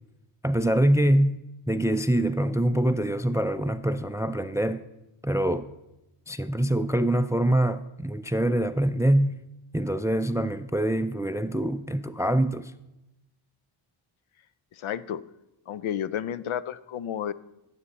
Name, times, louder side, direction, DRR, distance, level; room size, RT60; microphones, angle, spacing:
voice 1, 0.4-1.4 1.7-4.8 5.2-5.7 6.3-9.4 9.7-12.7, right 1 dB, 5° right, 0.3 m, -24 dB
voice 2, 14.7-15.2 15.7-17.3, left 9 dB, 75° left, 0.6 m, -31 dB
15.5 x 7.0 x 4.1 m
cardioid pair, 60°, 49 cm